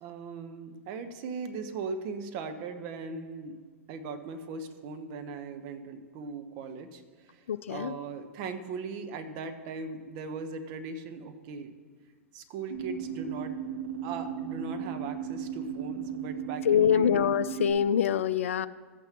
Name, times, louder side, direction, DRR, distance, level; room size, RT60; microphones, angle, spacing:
voice 1, 0.0-3.6 3.9-7.0 7.3-7.4 7.7-11.7 12.3-13.5 14.0-17.2, right 4 dB, 45° right, 7 dB, 1.0 m, -39 dB
voice 2, 7.5-7.9 16.7-18.7, left 8 dB, 70° left, 14 dB, 0.4 m, -25 dB
sound 1, 12.7-17.7, right 7 dB, 75° right, 3.2 m, -36 dB
14.5 x 8.7 x 3.0 m, 1.4 s
figure-of-eight pair, 100°, 7 cm